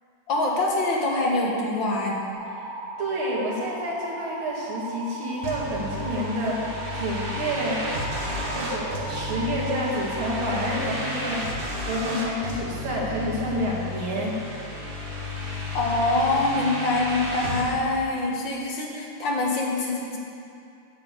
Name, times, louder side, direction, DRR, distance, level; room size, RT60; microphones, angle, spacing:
voice 1, 0.3-2.2 15.7-20.2, left 2 dB, 70° left, -2 dB, 2.1 m, -24 dB
sound 1, 2.3-10.6, right 1 dB, 50° right, 3.6 m, -37 dB
voice 2, 3.0-7.9 8.4-14.3, equal, 85° right, -5 dB, 2.8 m, -29 dB
sound 2, 5.4-17.7, left 1 dB, 30° right, 1.6 m, -32 dB
8.4 x 6.9 x 8.1 m, 2.5 s
omnidirectional pair, 2.2 m